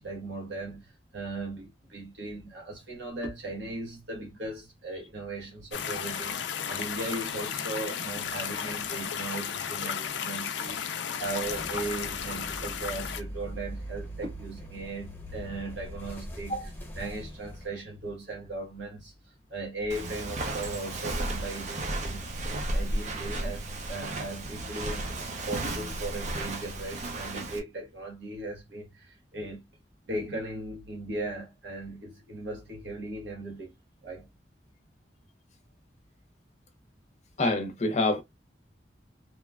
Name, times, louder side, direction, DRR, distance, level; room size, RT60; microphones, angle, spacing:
voice 1, 0.0-16.6 17.0-22.4 22.7-29.6 30.1-33.7 34.0-34.3, right 2 dB, 90° right, 1.1 m, -38 dB
sound 1, 5.7-13.2, left 7 dB, 80° left, 0.4 m, -34 dB
sound 2, 11.4-17.7, equal, 10° left, 1.0 m, -42 dB
Walk footsteps, 19.9-27.6, right 2 dB, 40° right, 0.5 m, -33 dB
voice 2, 37.4-38.2, left 2 dB, 40° left, 0.7 m, -26 dB
2.9 x 2.2 x 2.3 m
head